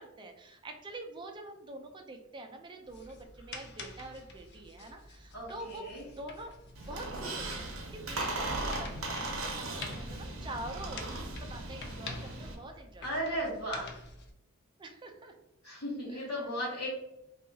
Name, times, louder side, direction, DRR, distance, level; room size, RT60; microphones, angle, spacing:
voice 1, 0.0-6.5 6.8-13.1 14.8-15.3 16.1-16.3, right 2 dB, 20° right, 4 dB, 0.3 m, -46 dB
sound 1, 2.8-14.3, left 3 dB, 50° left, 0.4 m, -48 dB
voice 2, 5.3-6.0 13.0-14.0 15.6-16.9, equal, 75° left, -7 dB, 1.0 m, -36 dB
Squeak, 6.7-12.5, right 2 dB, 70° right, 0.6 m, -37 dB
2.7 x 2.3 x 2.6 m, 0.85 s
head